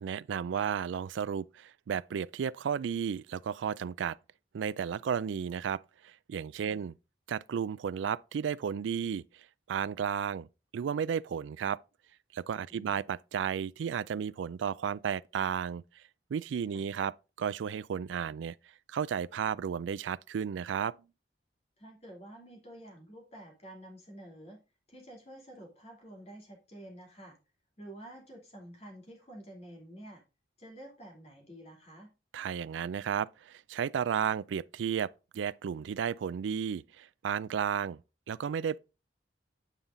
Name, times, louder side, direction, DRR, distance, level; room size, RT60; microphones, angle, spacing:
voice 1, 0.0-4.2 4.5-6.9 7.3-9.2 9.7-10.5 10.7-11.8 12.3-15.8 16.3-18.6 18.9-20.9 32.3-38.0 38.3-38.8, right 7 dB, 85° right, 0.3 m, -33 dB
voice 2, 12.7-13.0 16.7-16.8 21.8-24.6 24.9-27.4 27.8-30.2 30.6-32.1, right 1 dB, 35° left, 2.7 m, -49 dB
9.0 x 5.6 x 3.8 m
head